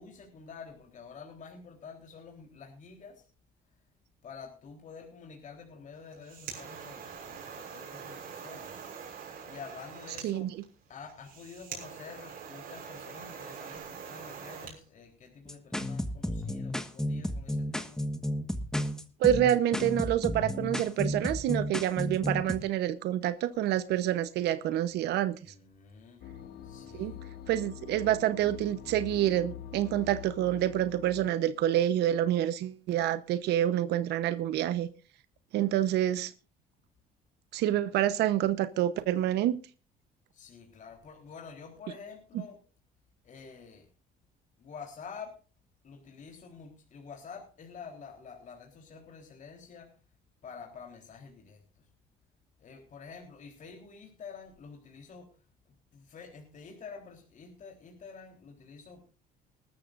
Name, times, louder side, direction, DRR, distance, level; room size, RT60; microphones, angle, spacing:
voice 1, 0.0-3.2 4.2-8.8 9.4-10.5 10.9-18.0 25.4-26.2 26.6-27.3 40.3-42.6 43.2-43.9 44.6-45.3 45.8-49.9 50.4-51.9 52.6-55.4 55.7-59.1, left 5 dB, 50° left, 1 dB, 3.8 m, -48 dB
sound 1, 6.0-14.8, right 6 dB, 60° right, 6.1 m, -44 dB
sound 2, 15.4-22.6, left 1 dB, 5° left, 1.5 m, -32 dB
voice 2, 19.2-25.4 26.9-27.1 27.5-34.9 35.5-36.3 37.5-39.6, right 12 dB, 80° right, 13 dB, 1.0 m, -27 dB
sound 3, 26.2-31.3, left 9 dB, 70° left, 1.6 m, -44 dB
20.0 x 13.5 x 2.6 m, 0.35 s
cardioid pair, 110°, 17 cm